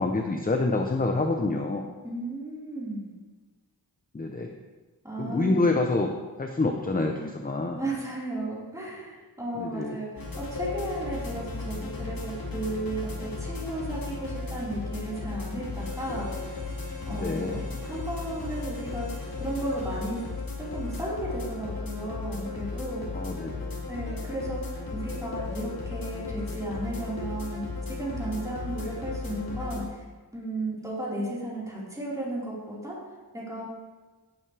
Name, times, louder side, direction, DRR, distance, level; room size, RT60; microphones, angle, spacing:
voice 1, 0.0-1.9 4.1-4.5 5.2-6.1 6.4-7.8 9.6-10.0 17.1-17.6 23.1-23.8, left 2 dB, 20° left, 3 dB, 0.8 m, -27 dB
voice 2, 2.0-3.1 5.0-5.7 7.7-16.5 17.1-19.1 19.4-20.2 20.6-23.0 23.9-30.0 30.3-33.0 33.3-33.6, right 1 dB, 10° right, -7 dB, 4.6 m, -34 dB
sound 1, 10.2-29.8, left 3 dB, 60° left, 2.8 m, -35 dB
Harmonica, 15.7-21.4, right 1 dB, 40° right, 2.5 m, -50 dB
17.5 x 8.9 x 3.4 m, 1.3 s
wide cardioid pair, 130°, 39 cm